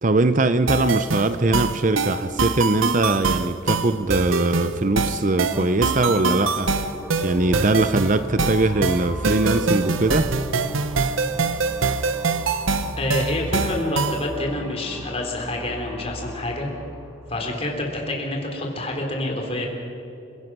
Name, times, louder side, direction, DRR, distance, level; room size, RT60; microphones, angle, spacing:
voice 1, 0.0-6.7 7.2-10.3, right 2 dB, 40° right, 11 dB, 0.6 m, -21 dB
sound 1, 0.7-14.3, right 4 dB, 85° right, 0.9 m, -24 dB
sound 2, 5.5-17.5, equal, 5° right, 1.9 m, -37 dB
voice 2, 13.0-16.7 17.3-19.7, left 1 dB, 30° left, 1 dB, 3.5 m, -27 dB
29.5 x 17.0 x 6.1 m, 2.9 s
head